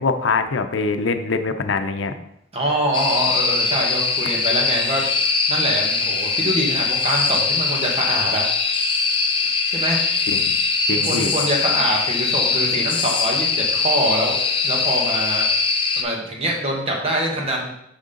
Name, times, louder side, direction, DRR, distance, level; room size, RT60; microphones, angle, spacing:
voice 1, 0.0-2.1 10.3-10.5 10.9-11.3, left 4 dB, 85° left, 8 dB, 0.6 m, -23 dB
voice 2, 2.5-5.0 5.5-8.5 9.7-10.0 10.9-14.4 14.6-15.4 16.0-17.7, right 1 dB, 30° right, -1 dB, 1.5 m, -24 dB
sound 1, 2.9-16.0, left 4 dB, 30° left, 0.7 m, -21 dB
6.3 x 6.0 x 3.9 m, 0.77 s
head